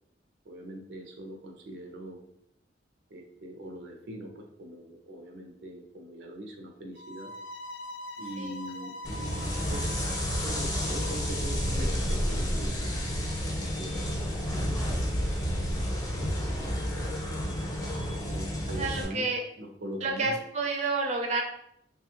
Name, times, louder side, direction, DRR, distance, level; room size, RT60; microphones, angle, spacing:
voice 1, 0.4-2.2 3.1-7.3 8.2-10.0 10.4-13.0 13.8-14.3 14.6-15.4 15.7-17.3 18.2-20.4, right 1 dB, 90° right, 3 dB, 0.6 m, -42 dB
sound 1, 7.0-11.9, left 1 dB, 75° left, 0.4 m, -43 dB
sound 2, 9.0-19.0, equal, 20° left, 0.6 m, -30 dB
voice 2, 18.8-19.4 20.0-21.4, right 3 dB, 40° right, 1 dB, 0.4 m, -29 dB
3.0 x 2.2 x 2.8 m, 0.74 s
head